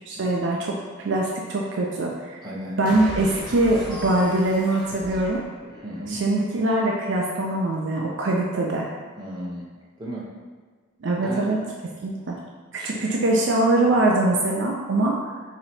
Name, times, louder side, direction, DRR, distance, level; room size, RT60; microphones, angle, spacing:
voice 1, 0.1-0.8 1.0-2.5 2.8-5.4 6.1-8.9 11.0-11.6 12.0-12.4 12.7-15.2, right 2 dB, 60° right, -2 dB, 0.4 m, -23 dB
voice 2, 2.4-2.8 5.7-6.2 9.2-9.6 10.0-10.3 11.2-11.5 12.8-13.2, equal, 20° right, -6 dB, 0.8 m, -34 dB
sound 1, 2.8-6.2, equal, 40° right, 1.1 m, -38 dB
3.1 x 2.8 x 4.1 m, 1.5 s
head